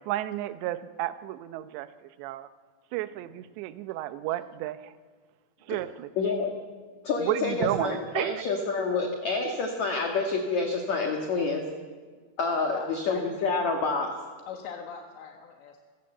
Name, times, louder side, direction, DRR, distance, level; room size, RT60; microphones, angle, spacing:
voice 1, 0.0-2.5 2.9-4.9 5.7-6.1 7.2-8.4, right 14 dB, 80° right, 12 dB, 3.0 m, -32 dB
voice 2, 6.2-6.5 7.0-11.6 12.4-14.1, left 4 dB, 55° left, 2 dB, 2.3 m, -28 dB
voice 3, 12.7-13.5 14.5-15.9, left 6 dB, 80° left, 2 dB, 3.8 m, -41 dB
28.5 x 16.5 x 7.9 m, 1.5 s
omnidirectional pair, 5.2 m